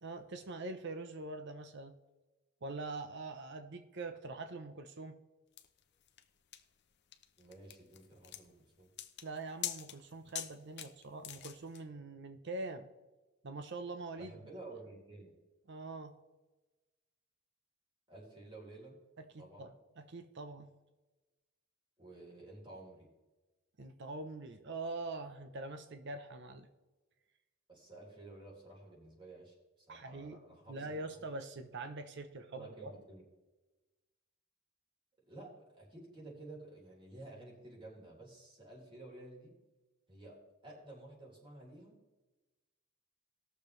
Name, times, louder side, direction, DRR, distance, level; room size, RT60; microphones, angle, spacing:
voice 1, 0.0-1.9 2.6-5.2 9.2-12.9 13.4-14.3 15.7-16.1 19.3-19.7 20.0-20.7 23.8-26.7 29.9-30.4 30.7-32.9, right 3 dB, 60° right, 8 dB, 0.8 m, -44 dB
sound 1, 5.6-11.8, left 12 dB, 55° left, 0.8 m, -45 dB
voice 2, 7.4-8.9 14.1-15.3 18.1-18.9 19.4-19.8 22.0-23.1 27.7-31.3 32.5-33.2 35.2-39.5 40.1-41.9, right 2 dB, 25° right, -4 dB, 3.8 m, -52 dB
19.5 x 6.8 x 3.2 m, 1.1 s
head